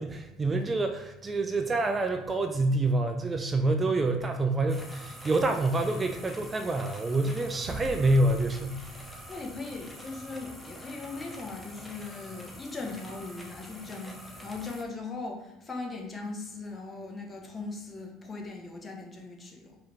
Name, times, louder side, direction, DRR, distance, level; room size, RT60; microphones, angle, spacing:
voice 1, 0.0-8.8 9.1-9.2, right 2 dB, 25° right, 6 dB, 0.3 m, -27 dB
sound 1, 4.7-14.8, left 1 dB, ahead, 0.8 m, -46 dB
sound 2, 7.6-10.2, right 3 dB, 65° right, 0.7 m, -43 dB
voice 2, 9.3-19.8, left 3 dB, 25° left, 0 dB, 1.0 m, -39 dB
4.8 x 2.9 x 3.4 m, 0.95 s
figure-of-eight pair, 60°, 0 cm